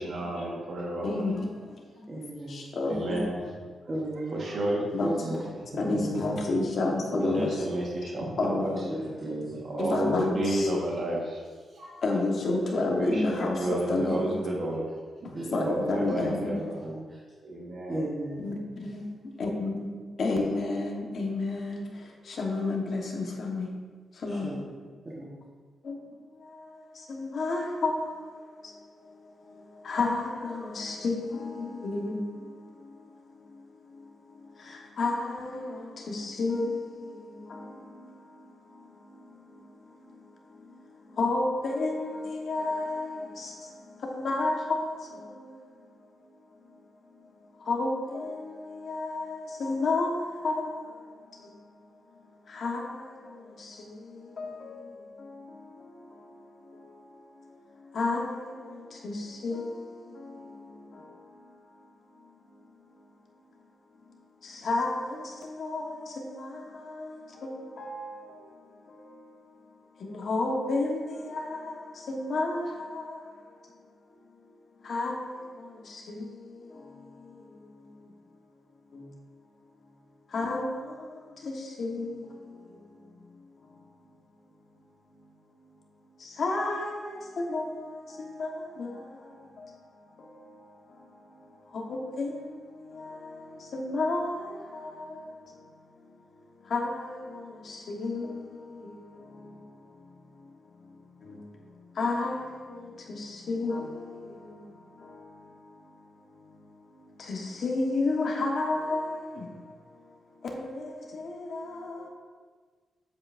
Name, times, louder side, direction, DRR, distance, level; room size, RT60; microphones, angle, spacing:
voice 1, 0.0-1.3 2.8-3.4 4.3-4.8 5.9-6.0 7.2-8.7 9.7-11.4 11.7-12.0 12.8-14.9 15.2-15.3 15.6-16.8 17.4-18.0, right 1 dB, 55° right, 1.5 m, -31 dB
voice 2, 1.0-2.2 2.5-3.2 4.9-5.4 5.7-7.7 8.4-8.9 9.8-10.7 11.8-14.3 15.2-16.6 18.4-23.7 24.1-24.6 25.8-26.0 26.7-46.8 47.2-51.8 52.1-61.8 62.2-62.6 62.9-63.0 64.4-69.6 70.0-73.7 74.8-78.3 78.9-79.1 80.3-83.7 86.2-95.7 96.6-110.1 110.4-112.1, left 2 dB, 55° left, 1.3 m, -33 dB
voice 3, 2.1-2.7 3.9-4.4 5.0-5.4 5.8-6.2 7.4-7.5 8.9-10.2 14.0-14.1 14.7-14.8 15.3-15.9 16.2-16.3 16.6-17.2 17.9-18.5 24.3-24.6 25.1-25.4, right 1 dB, 30° right, 1.3 m, -35 dB
7.7 x 7.7 x 2.6 m
cardioid pair, 115°, 0 cm